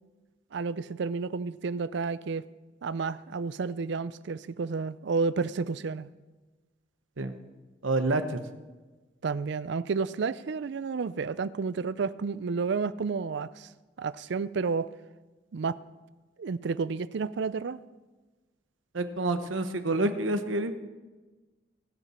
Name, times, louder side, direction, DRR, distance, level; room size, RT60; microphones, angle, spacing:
voice 1, 0.5-2.4 2.8-6.1 9.2-13.7 14.0-14.9 15.5-15.8 16.4-17.8, right 4 dB, 60° right, 17 dB, 0.4 m, -31 dB
voice 2, 7.8-8.4 18.9-20.7, right 2 dB, 80° right, 9 dB, 0.9 m, -28 dB
20.5 x 7.0 x 4.3 m, 1.2 s
head